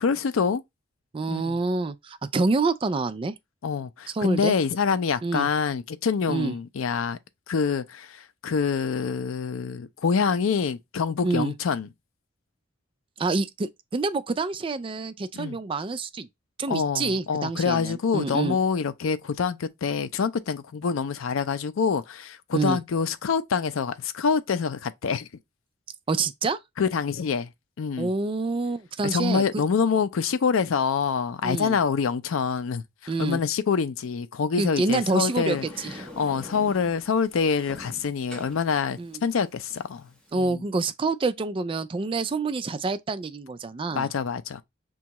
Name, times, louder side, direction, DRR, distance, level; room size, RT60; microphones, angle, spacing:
voice 1, 0.0-0.6 1.3-1.6 3.6-7.2 7.5-11.9 15.3-15.6 16.7-25.3 26.8-27.5 27.8-28.1 29.0-35.7 36.2-40.0 40.3-40.6 43.9-44.6, left 6 dB, 85° left, 0.4 m, -26 dB
voice 2, 1.1-3.3 4.1-4.5 5.2-5.5 6.3-6.5 11.2-11.5 13.2-16.3 16.6-18.6 22.5-22.8 26.1-26.6 28.0-29.4 31.4-31.8 33.1-33.4 34.6-36.1 39.0-39.2 40.3-44.1, right 3 dB, 25° right, 0.3 m, -27 dB
Sliding door, 35.1-40.3, left 1 dB, 5° left, 1.0 m, -45 dB
6.1 x 2.3 x 2.9 m
head